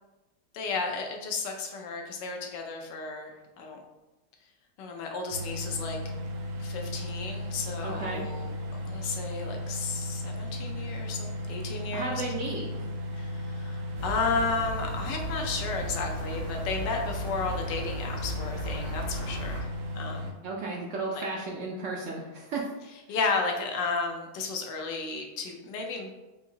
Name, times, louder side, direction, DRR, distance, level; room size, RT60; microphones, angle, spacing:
voice 1, 0.5-3.8 4.8-6.0 6.6-12.2 13.1-19.7 19.9-20.3 21.1-21.2 23.1-26.1, left 4 dB, 90° left, 3 dB, 1.3 m, -33 dB
sound 1, 5.3-20.3, left 1 dB, 70° right, 1.1 m, -35 dB
voice 2, 7.8-8.2 11.9-12.9 20.4-22.6, right 3 dB, 85° right, -1 dB, 0.6 m, -34 dB
sound 2, 14.0-19.6, right 1 dB, 50° right, 0.7 m, -38 dB
5.0 x 2.7 x 2.6 m, 1.1 s
omnidirectional pair, 1.9 m